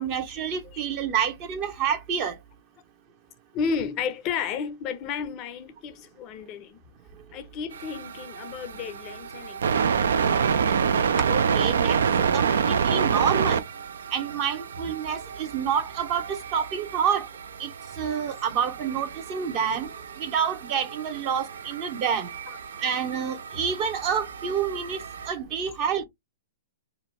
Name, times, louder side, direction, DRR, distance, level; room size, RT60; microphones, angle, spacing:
voice 1, 0.0-2.3 11.3-12.0 12.3-13.6 14.1-17.3 17.6-17.7 18.0-19.9 20.2-22.3 22.8-25.0 25.3-26.0, right 7 dB, 40° right, 0.7 m, -28 dB
voice 2, 3.5-6.8 7.3-10.1 22.5-22.6, left 6 dB, 35° left, 0.5 m, -32 dB
sound 1, 7.7-25.3, right 6 dB, 75° right, 0.3 m, -28 dB
2.7 x 2.1 x 2.8 m
hypercardioid pair, 115°, 0 cm